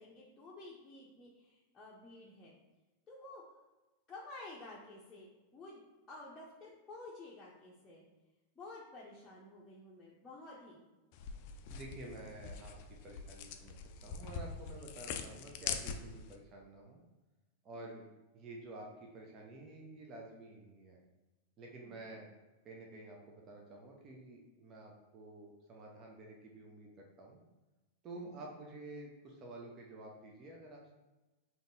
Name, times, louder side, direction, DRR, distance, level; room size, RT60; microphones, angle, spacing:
voice 1, 0.0-2.5 3.1-3.4 4.1-8.1 8.6-10.9 17.8-18.0 21.8-22.1 28.1-28.4, left 2 dB, 15° left, -6 dB, 0.7 m, -52 dB
sound 1, 11.1-16.4, left 6 dB, 45° left, 0.4 m, -43 dB
voice 2, 11.7-13.7 14.0-17.0 17.6-18.0 18.3-21.0 21.6-22.3 22.6-27.4 28.0-30.9, right 2 dB, 30° right, 0 dB, 0.6 m, -50 dB
5.1 x 2.9 x 2.6 m, 1.1 s
figure-of-eight pair, 90°, 0 cm